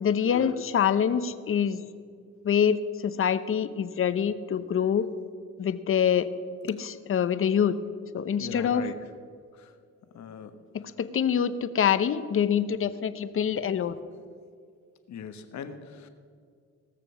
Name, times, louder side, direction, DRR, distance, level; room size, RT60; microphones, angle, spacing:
voice 1, 0.0-1.8 2.4-5.1 5.6-6.3 6.6-7.8 8.1-8.9 10.7-14.0, left 8 dB, 45° left, 13 dB, 0.8 m, -25 dB
voice 2, 8.4-8.9 10.1-10.5 15.1-16.1, left 7 dB, 65° left, 9 dB, 1.3 m, -39 dB
18.0 x 6.8 x 7.0 m, 2.1 s
cardioid pair, 90°, 30 cm